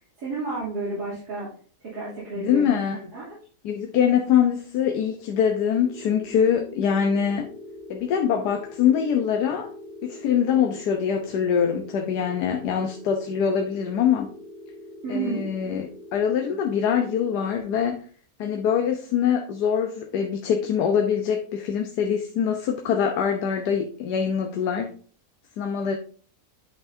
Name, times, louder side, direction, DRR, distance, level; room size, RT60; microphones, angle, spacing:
voice 1, 0.2-1.5 1.8-3.4 15.0-15.5, right 3 dB, 80° right, 3.5 m, -31 dB
voice 2, 2.3-3.0 3.6-7.5 7.9-9.7 10.0-14.3 15.1-18.0 18.4-24.9 25.6-26.0, left 8 dB, 85° left, 1.4 m, -24 dB
sound 1, 5.8-17.6, left 1 dB, 40° left, 1.1 m, -43 dB
10.5 x 5.6 x 2.7 m
omnidirectional pair, 1.7 m